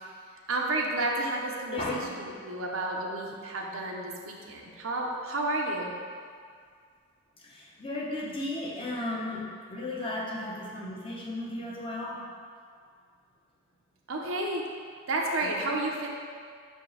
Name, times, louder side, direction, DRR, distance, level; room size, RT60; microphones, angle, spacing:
voice 1, 0.5-6.0 14.1-14.6 15.1-16.1, right 2 dB, 75° right, -1 dB, 0.9 m, -31 dB
voice 2, 7.4-12.2, left 2 dB, 25° left, -4 dB, 0.9 m, -35 dB
6.0 x 4.5 x 4.8 m, 2.1 s
head